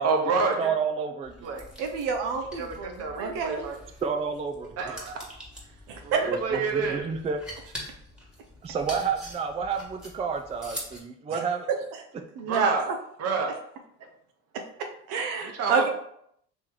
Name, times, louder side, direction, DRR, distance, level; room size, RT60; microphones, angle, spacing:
voice 1, 0.0-0.7 1.4-1.7 2.5-3.8 4.8-5.2 6.0-7.0 12.4-12.8 13.2-13.5 15.4-15.9, right 4 dB, 50° right, 3 dB, 1.0 m, -28 dB
voice 2, 0.6-1.5 4.0-5.0 6.3-7.4 8.6-11.7, right 6 dB, 20° right, 5 dB, 0.3 m, -30 dB
sound 1, 1.2-11.0, equal, ahead, 1.4 m, -44 dB
voice 3, 1.8-3.7 5.9-6.2 11.3-11.4 12.4-13.0 14.5-15.9, right 5 dB, 75° right, 4 dB, 0.6 m, -28 dB
3.1 x 3.1 x 3.8 m, 0.70 s
supercardioid pair, 80°, 33 cm